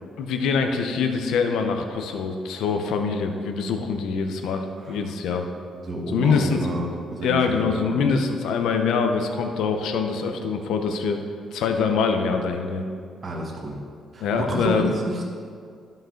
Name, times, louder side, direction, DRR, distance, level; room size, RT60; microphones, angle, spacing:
voice 1, 0.2-5.5 6.1-6.7 7.2-11.2 11.5-12.9 14.2-15.0, left 5 dB, 85° left, 5 dB, 0.7 m, -24 dB
voice 2, 5.8-7.9 13.2-13.8 14.1-15.2, right 1 dB, 40° right, -1 dB, 1.4 m, -30 dB
12.0 x 5.4 x 3.8 m, 2.2 s
cardioid pair, 90°, 0 cm